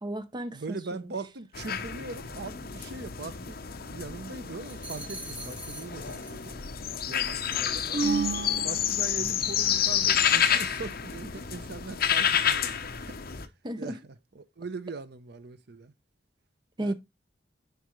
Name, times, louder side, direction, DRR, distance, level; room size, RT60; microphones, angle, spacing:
voice 1, 0.0-0.8 13.6-14.0 16.8-16.9, right 1 dB, 25° right, 0.6 m, -33 dB
voice 2, 0.5-3.6 3.9-6.6 7.1-8.0 8.6-13.2 13.8-14.0 14.3-15.9 16.8-16.9, right 3 dB, 60° right, 0.7 m, -40 dB
sound 1, 1.5-13.5, left 9 dB, 55° left, 0.9 m, -29 dB
sound 2, 4.6-6.6 6.9-7.2, right 1 dB, 5° right, 2.2 m, -43 dB
sound 3, 7.9-9.6, right 4 dB, 90° right, 2.5 m, -31 dB
10.0 x 5.0 x 3.1 m
head